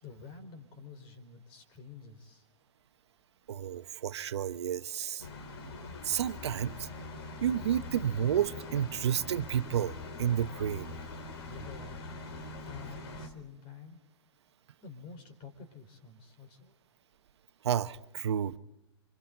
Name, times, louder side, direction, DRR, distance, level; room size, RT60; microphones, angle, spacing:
voice 1, 0.0-2.4 11.4-12.0 12.6-14.0 14.8-16.7, left 5 dB, 35° left, 4.5 m, -49 dB
voice 2, 3.5-5.3 6.0-6.9 7.4-9.9 10.2-10.9 17.6-18.6, right 9 dB, 70° right, 1.0 m, -31 dB
sound 1, 5.2-13.3, left 2 dB, 60° left, 3.1 m, -43 dB
27.5 x 25.5 x 4.0 m
hypercardioid pair, 125°, 15 cm